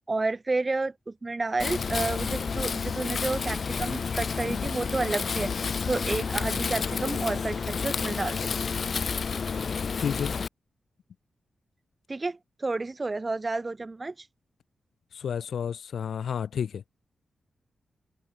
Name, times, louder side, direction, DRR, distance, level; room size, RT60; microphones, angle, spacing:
voice 1, 0.1-5.5 5.9-8.5 12.1-14.3, right 3 dB, 20° right, 4.6 m, -30 dB
Wind, 1.6-10.5, left 5 dB, 40° left, 4.8 m, -30 dB
voice 2, 10.0-10.3 15.1-16.8, left 8 dB, 70° left, 3.4 m, -31 dB
wide cardioid pair, 170°, 0 cm